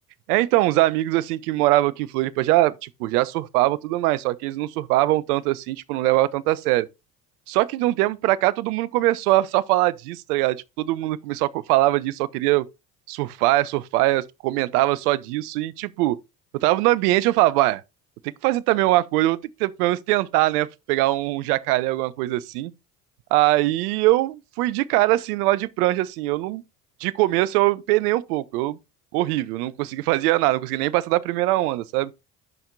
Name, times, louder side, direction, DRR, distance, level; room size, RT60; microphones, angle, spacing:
voice 1, 0.3-6.9 7.5-12.6 13.1-16.2 16.5-17.8 18.4-22.7 23.3-26.6 27.0-28.8 29.1-32.1, right 17 dB, 75° right, 0.6 m, -22 dB
12.0 x 4.3 x 2.5 m
hypercardioid pair, 65°, 45 cm